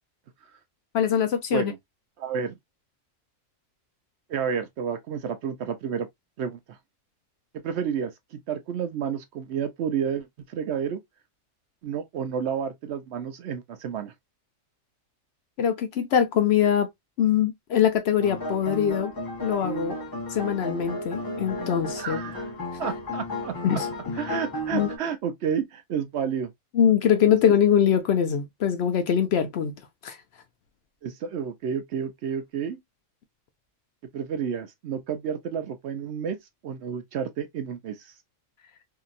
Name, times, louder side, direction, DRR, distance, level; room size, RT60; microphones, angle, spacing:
voice 1, 0.9-1.7 15.6-16.9 17.2-19.1 19.4-20.0 20.3-22.2 23.6-23.9 24.7-24.9 26.7-29.7 30.0-30.2, left 9 dB, 65° left, 0.7 m, -23 dB
voice 2, 2.2-2.6 4.3-6.1 6.4-6.8 7.6-11.0 11.8-14.1 22.0-22.5 22.8-23.6 24.1-26.5 31.0-32.8 34.1-36.4 36.6-38.1, right 7 dB, 65° right, 0.8 m, -30 dB
sound 1, 18.2-25.0, left 1 dB, 20° left, 0.6 m, -33 dB
2.8 x 2.6 x 2.4 m
omnidirectional pair, 1.3 m